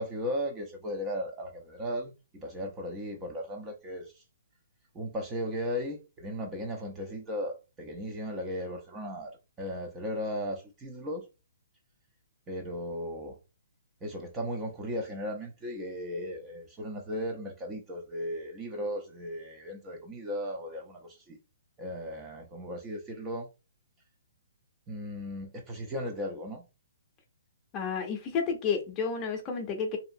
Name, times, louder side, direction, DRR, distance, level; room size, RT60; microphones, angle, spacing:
voice 1, 0.0-4.2 4.9-11.2 12.5-13.4 14.0-21.4 21.8-23.5 24.9-26.6, equal, 15° right, 0.6 m, -36 dB
voice 2, 27.7-30.0, left 6 dB, 25° left, 0.7 m, -31 dB
2.7 x 2.4 x 2.6 m
hypercardioid pair, 145°, 0 cm